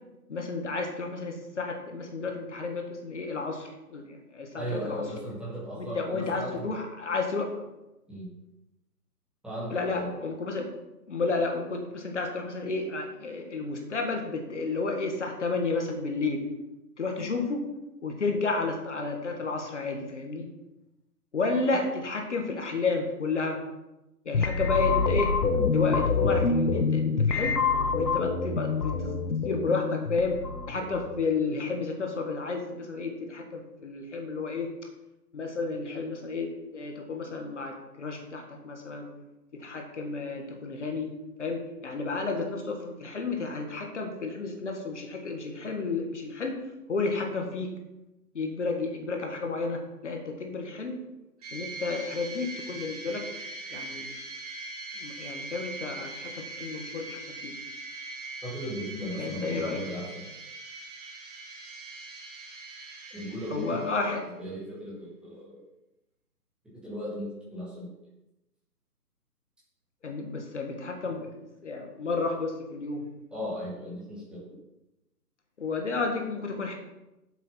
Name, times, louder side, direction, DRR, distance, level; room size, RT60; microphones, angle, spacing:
voice 1, 0.3-5.1 5.7-7.6 9.7-10.7 11.1-16.4 17.0-17.6 18.0-20.5 21.3-23.6 24.2-25.4 25.7-27.6 27.9-29.2 29.4-34.7 35.3-39.1 39.5-41.1 41.4-46.6 46.9-47.8 48.3-51.0 51.5-53.3 53.7-54.1 55.0-57.5 59.2-59.8 63.5-64.3 70.0-73.1 75.6-76.7, left 3 dB, 45° left, 3 dB, 1.7 m, -31 dB
voice 2, 4.5-6.7 8.1-8.3 9.4-10.1 17.2-17.3 21.6-21.8 58.4-60.3 63.1-64.1 64.4-65.6 66.8-67.9 73.3-74.4, equal, ahead, -9 dB, 2.1 m, -37 dB
sound 1, 24.3-31.2, left 4 dB, 70° left, 1.1 m, -26 dB
sound 2, 51.4-64.3, right 2 dB, 25° right, 1.9 m, -41 dB
8.0 x 7.2 x 5.8 m, 0.95 s
figure-of-eight pair, 145°, 48 cm